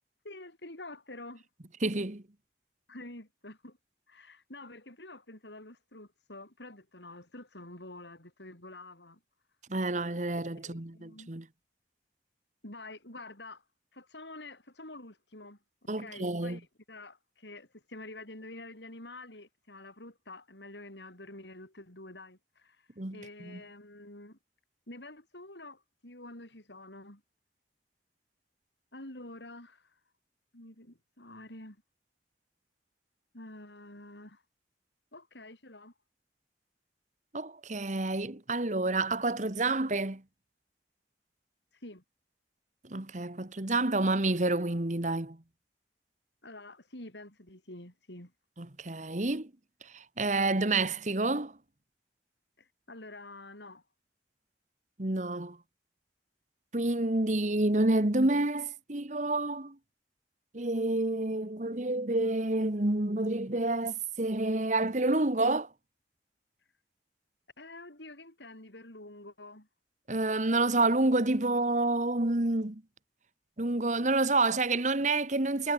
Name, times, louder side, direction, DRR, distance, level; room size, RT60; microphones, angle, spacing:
voice 1, 0.2-1.5 2.9-3.8 4.1-9.2 10.6-11.3 12.6-13.6 13.9-22.8 23.1-24.4 24.9-27.2 28.9-29.9 30.5-31.8 33.3-34.4 35.1-35.9 41.8-42.0 46.4-48.3 52.6-53.8 67.6-69.7, left 2 dB, 85° left, 7.7 m, -48 dB
voice 2, 1.8-2.2 9.7-11.5 15.9-16.6 23.0-23.6 37.3-40.2 42.8-45.4 48.6-49.5 49.9-51.5 55.0-55.6 56.7-59.8 60.5-65.7 70.1-72.8 73.6-75.7, right 2 dB, 45° right, 1.5 m, -29 dB
head